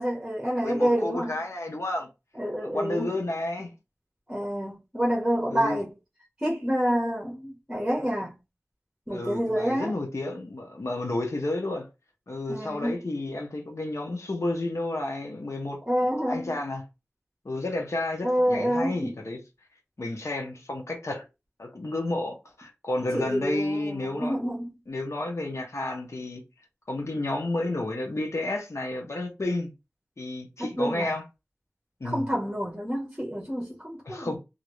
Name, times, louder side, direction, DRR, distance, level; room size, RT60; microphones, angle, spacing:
voice 1, 0.0-1.3 2.4-3.1 4.3-5.9 6.4-8.3 9.1-9.9 12.5-13.0 15.9-16.6 18.2-19.1 23.1-24.7 30.6-31.1 32.0-34.4, equal, 10° right, 1.0 m, -28 dB
voice 2, 0.6-2.1 2.6-3.7 5.5-5.8 9.1-11.9 12.3-15.8 16.3-16.8 17.4-19.4 20.0-21.3 21.6-24.4 24.9-26.4 26.9-29.7 30.2-31.2 32.0-32.3 34.1-34.4, left 2 dB, 70° left, 0.7 m, -31 dB
3.0 x 2.6 x 3.0 m
wide cardioid pair, 40°, 5 cm